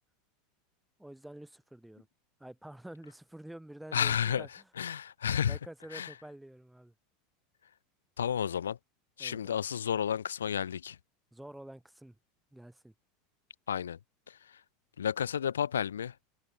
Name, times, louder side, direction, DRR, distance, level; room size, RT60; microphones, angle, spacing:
voice 1, 1.0-2.1 2.4-4.5 5.5-6.9 9.2-9.6 11.3-12.2 12.5-12.9, right 1 dB, 5° right, 6.9 m, -48 dB
voice 2, 3.9-4.5 4.8-5.6 5.9-6.1 8.2-8.8 9.2-11.0 13.7-14.0 14.3-14.6 15.0-16.2, left 8 dB, 80° left, 0.6 m, -31 dB
hypercardioid pair, 80°, 0 cm